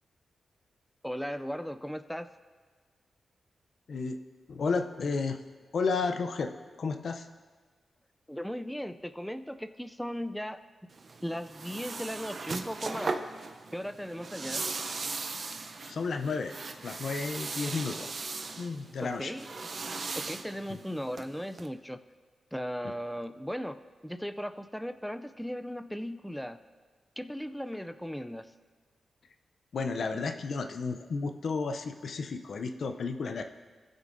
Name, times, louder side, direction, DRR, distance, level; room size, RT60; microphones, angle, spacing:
voice 1, 1.0-2.3 8.3-10.9 11.2-13.2 13.7-14.7 19.0-19.7 20.1-22.0 22.5-26.6 27.2-28.5, equal, ahead, 9 dB, 0.3 m, -37 dB
voice 2, 4.5-5.4 5.7-6.5 6.8-7.3 15.9-16.5 16.8-18.1 18.6-19.3 29.7-33.4, left 4 dB, 70° left, 7 dB, 0.5 m, -32 dB
sound 1, 10.9-21.7, right 3 dB, 55° right, 0.6 m, -38 dB
17.5 x 6.3 x 2.6 m, 1.5 s
cardioid pair, 75°, 0 cm